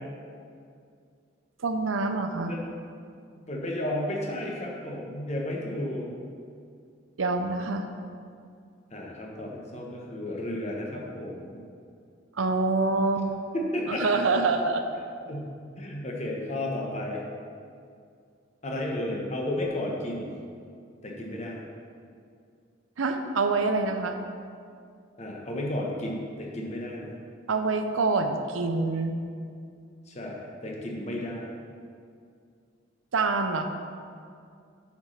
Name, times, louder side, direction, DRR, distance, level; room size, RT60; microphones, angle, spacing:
voice 1, 1.6-2.5 7.2-7.9 12.3-13.3 13.9-14.8 23.0-24.2 27.5-29.2 33.1-33.7, right 3 dB, 85° right, 6 dB, 0.7 m, -26 dB
voice 2, 3.4-6.1 8.9-11.6 13.5-14.0 15.3-15.5 15.8-17.2 18.6-20.3 21.0-21.6 25.2-27.1 30.1-31.5, left 1 dB, 35° left, -1 dB, 1.2 m, -33 dB
8.1 x 5.1 x 5.7 m, 2.3 s
head